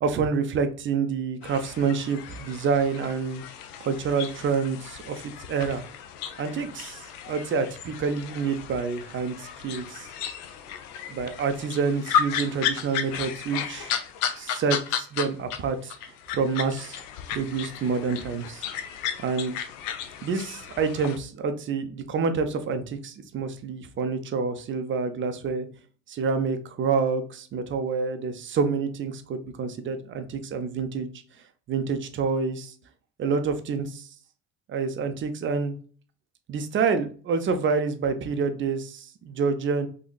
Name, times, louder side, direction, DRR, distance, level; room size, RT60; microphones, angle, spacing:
voice 1, 0.0-3.4 3.8-5.2 5.5-5.8 6.4-7.0 7.3-10.1 11.1-13.9 14.4-15.9 16.3-17.0 17.3-18.7 19.2-19.5 20.2-25.7 26.1-31.1 31.7-32.7 33.2-34.1 34.7-35.7 36.5-39.9, right 5 dB, 25° right, 8 dB, 0.5 m, -27 dB
sound 1, 1.4-15.6 15.9-21.2, left 8 dB, 65° left, 0.6 m, -34 dB
3.8 x 2.8 x 2.3 m, 0.42 s
figure-of-eight pair, 60°, 50 cm